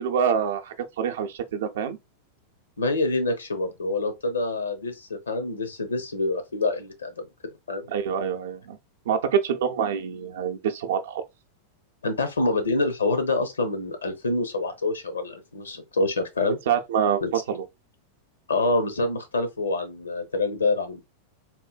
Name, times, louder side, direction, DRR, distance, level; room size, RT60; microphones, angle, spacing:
voice 1, 0.0-2.0 7.9-8.8 9.1-11.2 16.7-17.6, right 7 dB, 60° right, 0.5 m, -26 dB
voice 2, 2.8-7.2 7.7-7.9 12.0-16.6 17.2-17.3 18.5-21.0, left 2 dB, 70° left, 0.6 m, -26 dB
3.7 x 2.7 x 2.2 m
figure-of-eight pair, 90°, 0 cm